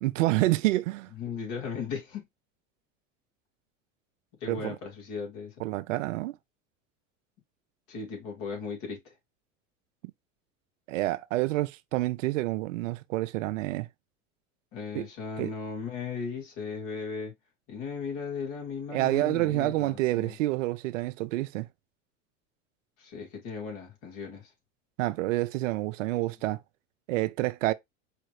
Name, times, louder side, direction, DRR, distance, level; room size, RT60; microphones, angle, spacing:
voice 1, 0.0-1.1 4.5-4.8 5.6-6.4 10.9-13.9 14.9-15.1 15.4-15.5 18.9-21.7 25.0-26.6 27.1-27.7, right 17 dB, 75° right, 0.6 m, -28 dB
voice 2, 1.1-2.3 4.4-5.6 7.9-9.1 14.7-17.3 17.7-20.4 23.0-24.5, left 5 dB, 60° left, 3.3 m, -37 dB
4.9 x 3.1 x 3.1 m
hypercardioid pair, 90°, 38 cm